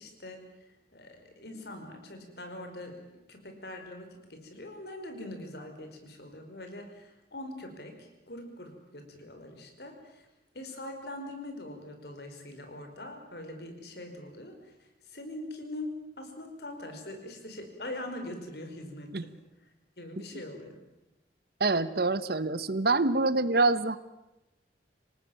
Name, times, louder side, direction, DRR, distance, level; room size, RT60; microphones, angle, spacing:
voice 1, 0.0-10.3 10.5-19.4 20.0-20.8, left 1 dB, 65° left, 5 dB, 5.1 m, -43 dB
voice 2, 21.6-24.0, right 3 dB, 60° right, 15 dB, 1.2 m, -26 dB
26.5 x 18.5 x 9.1 m, 0.97 s
head